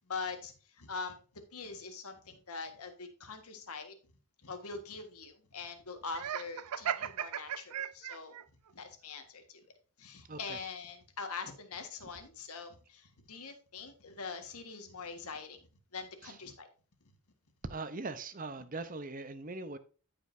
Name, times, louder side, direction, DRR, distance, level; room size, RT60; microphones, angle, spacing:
voice 1, 0.0-3.9 4.4-8.3 8.7-9.7 10.0-16.7, left 4 dB, 85° left, 1.7 m, -43 dB
Laughter, 6.1-8.4, right 9 dB, 90° right, 0.5 m, -36 dB
voice 2, 17.7-19.8, right 3 dB, 40° right, 0.8 m, -40 dB
13.5 x 5.2 x 2.7 m
head